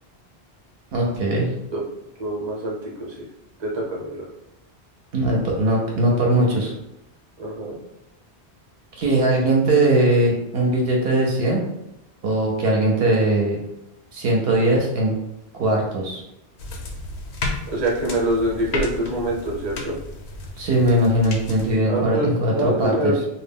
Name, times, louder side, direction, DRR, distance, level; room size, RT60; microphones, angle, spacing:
voice 1, 0.9-1.5 5.1-6.7 9.0-11.7 12.2-13.6 14.1-15.1 15.5-16.2 20.6-23.1, right 1 dB, 70° right, -2 dB, 0.8 m, -20 dB
voice 2, 2.2-3.2 3.6-4.3 7.4-7.8 17.7-19.9 21.8-23.1, right 1 dB, 30° right, -4 dB, 0.7 m, -25 dB
sound 1, 16.6-21.8, left 2 dB, 85° left, 0.8 m, -32 dB
2.2 x 2.1 x 3.4 m, 0.85 s
omnidirectional pair, 1.1 m